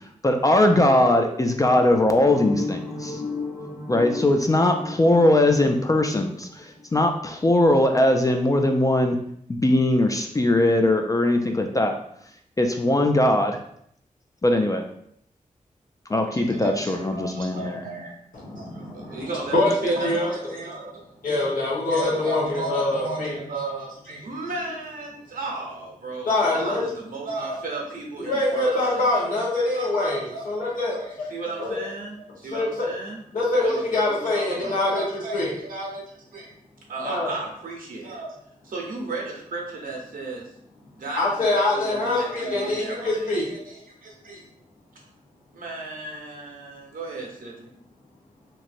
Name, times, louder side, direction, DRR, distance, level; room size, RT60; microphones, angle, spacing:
voice 1, 0.2-3.2 3.9-9.2 9.5-12.0 12.6-13.6 14.4-14.8 16.1-17.8, left 1 dB, 25° left, 4 dB, 0.4 m, -20 dB
sound 1, 2.2-7.0, left 3 dB, 50° left, 1.1 m, -33 dB
voice 2, 16.3-18.1 18.6-19.6 19.8-21.0 21.9-30.4 30.9-33.2 33.5-36.5 36.9-38.3 38.6-40.4 41.0-44.4 45.5-47.7, right 3 dB, 80° right, -1 dB, 0.9 m, -34 dB
voice 3, 18.3-20.4 20.8-20.9 21.2-23.4 26.2-26.8 28.2-31.3 31.6-31.8 32.4-32.9 33.3-35.5 37.0-37.3 41.1-43.5, left 2 dB, 80° left, -6 dB, 1.1 m, -24 dB
3.1 x 2.7 x 2.5 m, 0.69 s
cardioid pair, 55°, 14 cm